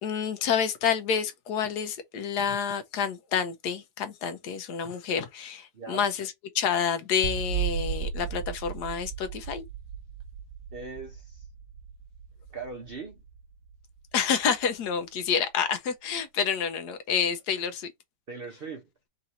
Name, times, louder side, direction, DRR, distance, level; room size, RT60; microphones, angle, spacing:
voice 1, 0.0-9.6 14.1-17.9, left 7 dB, 75° left, 1.3 m, -28 dB
voice 2, 5.7-6.1 10.7-11.5 12.5-13.2 18.3-18.9, right 4 dB, 45° right, 0.8 m, -40 dB
sound 1, 7.2-14.4, right 8 dB, 85° right, 1.2 m, -36 dB
3.8 x 2.6 x 4.2 m
omnidirectional pair, 1.8 m